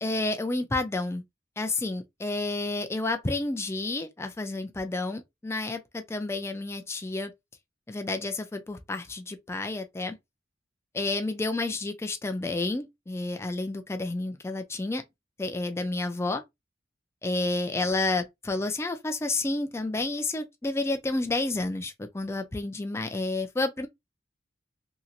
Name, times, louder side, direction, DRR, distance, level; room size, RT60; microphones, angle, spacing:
voice 1, 0.0-1.2 1.6-7.3 7.9-10.2 10.9-15.0 15.4-16.4 17.2-23.9, left 2 dB, 15° left, 0.4 m, -30 dB
2.9 x 2.8 x 2.6 m
head